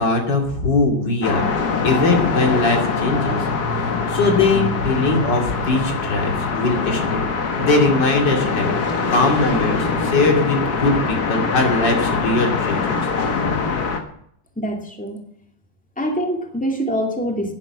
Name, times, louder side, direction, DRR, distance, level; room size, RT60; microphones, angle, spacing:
voice 1, 0.0-1.5 1.8-3.5 3.7-7.3 7.6-13.1, left 3 dB, 90° left, 2 dB, 3.3 m, -20 dB
sound 1, 1.2-14.0, left 4 dB, 65° left, 2.0 m, -23 dB
voice 2, 14.6-15.2 16.0-17.5, equal, 5° left, 2 dB, 2.2 m, -24 dB
11.5 x 9.9 x 7.4 m, 0.68 s
omnidirectional pair, 1.9 m